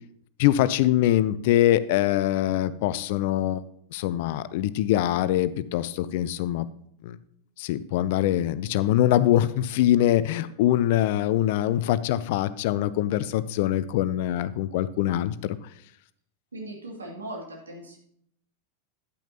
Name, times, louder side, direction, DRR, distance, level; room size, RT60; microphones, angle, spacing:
voice 1, 0.4-3.6 3.9-6.7 7.0-7.2 7.6-15.6, left 13 dB, 50° left, 16 dB, 0.4 m, -23 dB
voice 2, 16.5-18.0, right 1 dB, 75° right, -1 dB, 2.3 m, -38 dB
9.9 x 8.9 x 2.8 m, 0.68 s
figure-of-eight pair, 90°, 0 cm